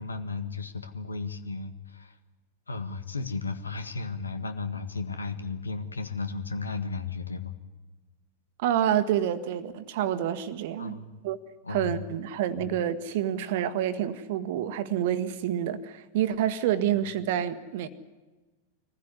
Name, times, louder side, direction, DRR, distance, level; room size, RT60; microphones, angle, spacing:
voice 1, 0.0-2.2 2.7-7.5 10.8-11.2 11.6-12.0 12.6-12.7 17.0-17.1, left 4 dB, 75° left, 1.6 m, -34 dB
voice 2, 8.6-11.0 11.2-11.4 11.7-17.9, right 10 dB, 50° right, 1.4 m, -28 dB
23.0 x 15.0 x 9.8 m
figure-of-eight pair, 90°, 0 cm